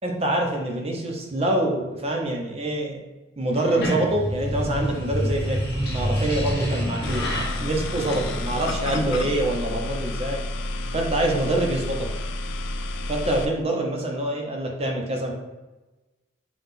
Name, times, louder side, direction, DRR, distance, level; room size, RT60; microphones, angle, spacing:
voice 1, 0.0-3.0 3.4-7.3 7.6-10.4 10.9-12.1 13.1-15.3, right 1 dB, 30° right, 0 dB, 0.6 m, -25 dB
sound 1, 3.6-8.9, equal, 55° left, 1.0 m, -28 dB
sound 2, 7.0-13.5, left 1 dB, 80° left, 0.4 m, -30 dB
5.7 x 2.3 x 3.5 m, 1.1 s
head